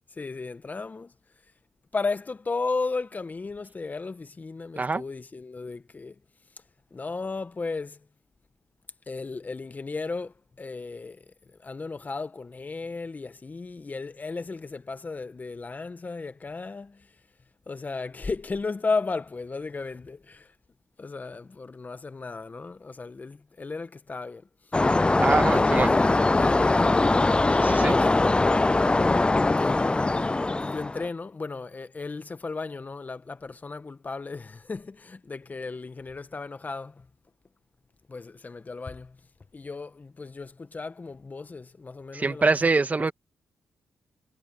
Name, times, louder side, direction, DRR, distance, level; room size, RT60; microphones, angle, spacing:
voice 1, 0.1-1.1 1.9-6.2 6.9-8.0 9.1-17.1 17.7-20.5 21.0-24.5 25.5-27.2 27.8-28.4 29.6-37.1 38.1-39.2 39.5-43.1, left 4 dB, 35° left, 1.7 m, -35 dB
sound 1, 24.7-31.1, left 2 dB, 20° left, 0.6 m, -22 dB
voice 2, 25.2-25.9 27.5-28.0 42.1-43.1, right 3 dB, 35° right, 2.0 m, -24 dB
supercardioid pair, 50°, 5 cm